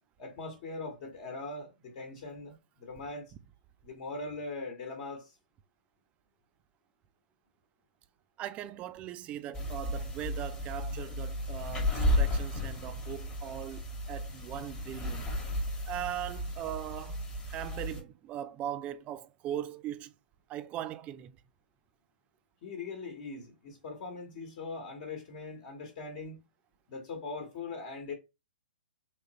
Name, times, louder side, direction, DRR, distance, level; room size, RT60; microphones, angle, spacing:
voice 1, 0.2-3.3 3.8-5.3 22.6-26.4 26.9-28.1, left 3 dB, 45° left, 1.1 m, -41 dB
voice 2, 8.4-15.3 15.9-20.1 20.5-21.4, right 11 dB, 25° right, 0.4 m, -40 dB
sound 1, 9.5-18.0, left 1 dB, 15° left, 1.1 m, -33 dB
3.5 x 2.9 x 2.8 m
hypercardioid pair, 125°, 5 cm